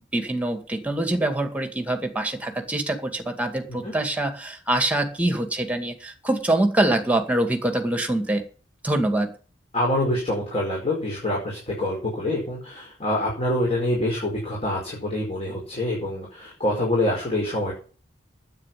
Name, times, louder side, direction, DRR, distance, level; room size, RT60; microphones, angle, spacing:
voice 1, 0.1-8.5 8.8-9.3, right 1 dB, 10° right, 6 dB, 2.2 m, -24 dB
voice 2, 9.7-17.7, left 1 dB, 35° left, -3 dB, 4.9 m, -26 dB
9.6 x 8.6 x 9.3 m, 0.39 s
head